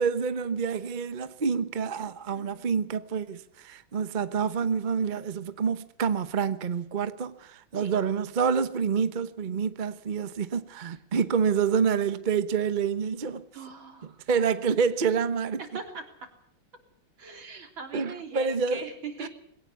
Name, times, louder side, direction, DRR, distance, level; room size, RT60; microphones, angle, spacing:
voice 1, 0.0-13.4 14.3-15.6 17.9-18.8 19.2-19.3, right 6 dB, 40° right, 0.6 m, -27 dB
voice 2, 2.3-2.7 7.7-8.0 13.5-14.2 15.7-16.3 17.2-19.3, right 4 dB, 70° right, 4.2 m, -41 dB
21.5 x 18.0 x 8.4 m
omnidirectional pair, 2.2 m